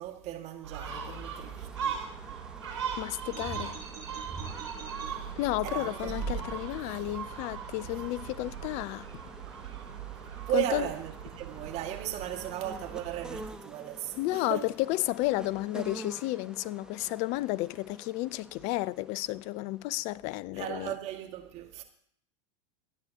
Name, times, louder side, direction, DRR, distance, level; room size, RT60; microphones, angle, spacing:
voice 1, 0.0-2.0 5.6-6.6 6.8-7.1 10.5-14.7 20.5-21.8, right 12 dB, 45° right, 1.9 m, -36 dB
Gull seagull, 0.6-13.5, right 7 dB, 80° right, 4.3 m, -40 dB
sound 1, 0.8-20.4, right 2 dB, 5° right, 1.1 m, -49 dB
voice 2, 3.0-3.8 5.4-9.1 10.5-10.9 14.2-20.9, left 18 dB, 45° left, 0.5 m, -32 dB
sound 2, 3.3-5.1 5.9-6.9, right 5 dB, 25° right, 5.0 m, -39 dB
24.5 x 9.6 x 2.9 m
hypercardioid pair, 90°, 16 cm